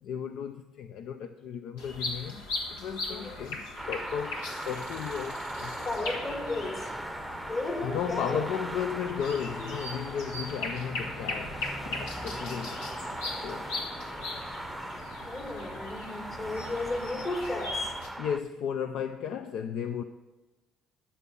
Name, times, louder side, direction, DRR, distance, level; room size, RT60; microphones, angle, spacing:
voice 1, 0.0-2.4 2.7-5.9 7.8-11.6 11.9-13.7 18.2-20.0, left 8 dB, 70° left, 0.5 m, -35 dB
sound 1, 1.8-18.1, left 2 dB, 90° left, 1.5 m, -39 dB
sound 2, 3.8-18.4, right 1 dB, 5° right, 0.7 m, -40 dB
voice 2, 5.8-6.9 7.5-8.4 15.2-17.9, left 2 dB, 45° left, 3.2 m, -34 dB
13.0 x 7.3 x 5.4 m
supercardioid pair, 65°, 0 cm